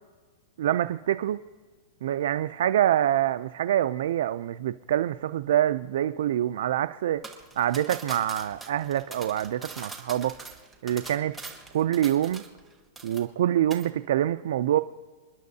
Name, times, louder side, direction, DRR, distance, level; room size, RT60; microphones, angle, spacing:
voice 1, 0.6-1.4 2.0-7.2 7.6-10.3 10.8-11.3 11.7-12.4 13.0-14.8, right 11 dB, 70° right, 11 dB, 0.3 m, -25 dB
sound 1, 7.2-12.7 13.0-13.4 13.7-13.9, right 3 dB, ahead, 1.2 m, -42 dB
28.0 x 10.5 x 2.7 m, 1.4 s
supercardioid pair, 170°, 0 cm